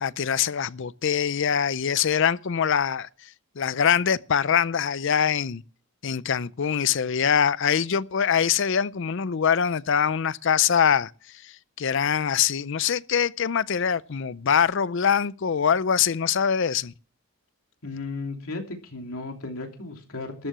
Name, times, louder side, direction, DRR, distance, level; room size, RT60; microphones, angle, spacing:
voice 1, 0.0-3.1 3.6-5.6 6.0-11.1 11.4-16.9, left 7 dB, 60° left, 0.5 m, -23 dB
voice 2, 17.8-20.5, left 3 dB, 75° left, 3.0 m, -35 dB
13.5 x 7.6 x 7.5 m
head